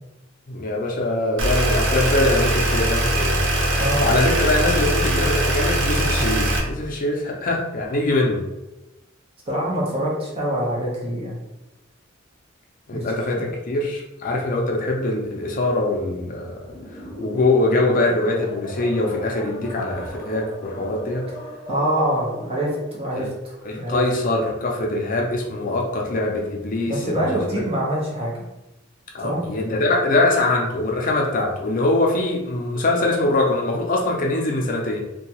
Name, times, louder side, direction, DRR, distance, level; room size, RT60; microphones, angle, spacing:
voice 1, 0.5-3.4 3.7-8.4 12.9-16.5 17.2-21.3 23.2-23.3 23.6-27.2 27.5-27.6 29.1-35.0, left 2 dB, 45° left, 0 dB, 0.5 m, -23 dB
sound 1, 1.4-6.6, right 1 dB, 65° right, 0.6 m, -21 dB
voice 2, 3.8-4.1 9.5-11.4 12.9-13.1 13.4-13.5 21.7-24.0 26.9-28.5 29.2-29.4, right 1 dB, 30° right, -5 dB, 0.8 m, -25 dB
sound 2, 16.6-23.1, equal, 15° left, 0.9 m, -37 dB
2.7 x 2.2 x 2.9 m, 0.97 s
head